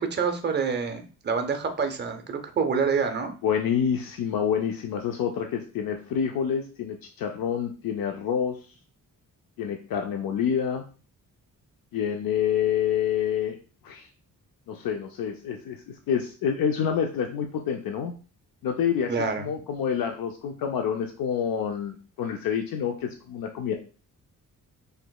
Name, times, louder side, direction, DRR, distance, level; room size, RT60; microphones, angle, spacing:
voice 1, 0.0-3.3 19.1-19.5, right 5 dB, 30° right, 6 dB, 0.5 m, -27 dB
voice 2, 3.4-8.6 9.6-10.8 11.9-13.6 13.8-14.1 14.7-18.1 18.6-19.1 19.4-23.7, left 8 dB, 70° left, 3 dB, 0.5 m, -27 dB
4.8 x 3.2 x 2.3 m, 0.37 s
wide cardioid pair, 170°, 35 cm